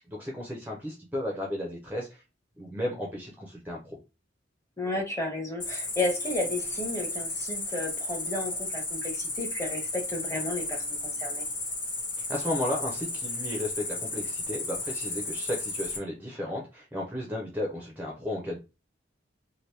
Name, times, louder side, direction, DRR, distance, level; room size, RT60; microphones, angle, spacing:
voice 1, 0.1-2.2 2.6-4.0 12.2-18.6, left 1 dB, 10° right, -1 dB, 0.6 m, -34 dB
voice 2, 4.8-11.4, left 2 dB, 15° left, 0 dB, 0.9 m, -33 dB
Cricket, 5.6-16.0, left 2 dB, 80° left, 1.4 m, -34 dB
2.9 x 2.6 x 3.3 m, 0.28 s
head